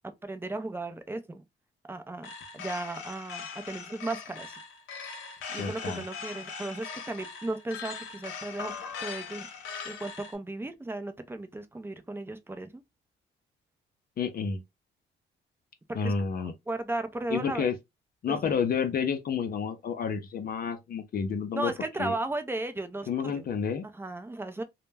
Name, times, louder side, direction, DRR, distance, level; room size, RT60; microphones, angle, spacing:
voice 1, 0.2-1.4 1.9-4.6 5.5-8.8 9.0-12.8 15.9-16.1 16.4-17.7 18.3-18.6 21.5-23.5 23.9-24.6, right 2 dB, 10° right, 0.5 m, -35 dB
sound 1, 2.2-10.4, left 6 dB, 80° left, 0.8 m, -40 dB
voice 2, 5.6-6.0 14.2-14.6 15.9-16.5 17.3-17.7 18.2-21.7 22.0-22.1 23.1-23.8, left 6 dB, 50° left, 0.5 m, -30 dB
2.1 x 2.1 x 3.2 m
cardioid pair, 90°, 20 cm